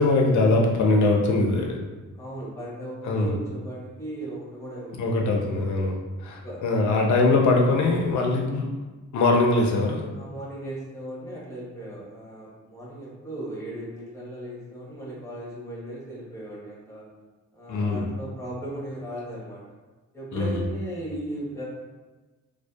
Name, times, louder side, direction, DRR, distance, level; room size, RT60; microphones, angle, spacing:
voice 1, 0.0-1.8 3.0-3.3 5.0-5.9 6.2-8.7 9.1-10.1 17.7-18.0 20.3-20.5, left 2 dB, 70° left, 0 dB, 0.5 m, -22 dB
voice 2, 2.2-5.7 6.4-6.6 10.1-17.1 17.5-19.6 20.1-21.6, right 1 dB, 10° left, -7 dB, 0.8 m, -37 dB
2.6 x 2.2 x 2.2 m, 1.2 s
wide cardioid pair, 135°, 30 cm